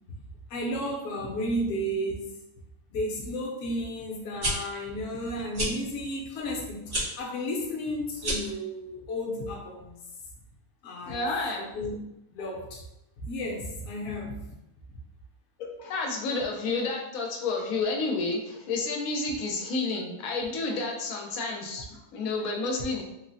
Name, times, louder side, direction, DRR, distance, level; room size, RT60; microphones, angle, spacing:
voice 1, 0.5-2.4 2.9-10.0 10.8-11.3 11.6-12.0 12.3-12.8 13.2-14.4, equal, 60° left, -2 dB, 0.9 m, -33 dB
sound 1, 4.2-4.5 5.5-5.7 6.9-7.1 8.2-8.6, right 1 dB, 65° right, 1.7 m, -29 dB
voice 2, 11.1-11.6 15.6-23.0, left 3 dB, 90° left, 1 dB, 1.1 m, -30 dB
3.5 x 2.0 x 2.6 m, 0.88 s
omnidirectional pair, 1.4 m